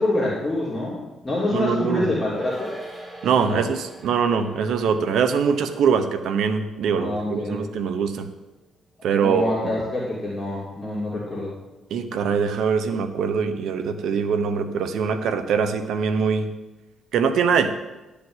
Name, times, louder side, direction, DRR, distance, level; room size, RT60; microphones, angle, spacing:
voice 1, 0.0-2.7 3.4-3.7 6.9-7.6 9.2-11.5, left 1 dB, 20° left, -6 dB, 2.9 m, -26 dB
voice 2, 1.5-2.1 3.2-8.3 9.0-9.9 11.9-16.5 17.1-17.7, right 6 dB, 75° right, 9 dB, 1.0 m, -23 dB
sound 1, 2.3-9.0 9.3-9.4, right 1 dB, 15° right, 2.5 m, -43 dB
12.0 x 5.2 x 8.1 m, 1.1 s
cardioid pair, 90°, 0 cm